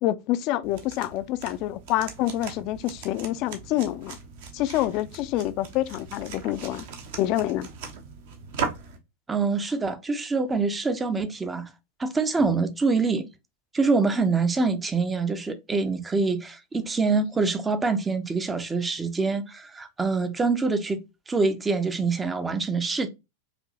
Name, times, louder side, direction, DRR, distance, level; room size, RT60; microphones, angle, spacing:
voice 1, 0.0-4.2 4.5-6.9 7.2-7.7, left 14 dB, 40° left, 0.4 m, -27 dB
sound 1, 0.6-9.0, right 6 dB, 55° right, 0.8 m, -38 dB
voice 2, 9.3-11.7 12.0-13.3 13.7-21.0 21.3-23.1, right 4 dB, 15° right, 0.5 m, -25 dB
4.9 x 2.6 x 2.9 m
figure-of-eight pair, 90°, 0 cm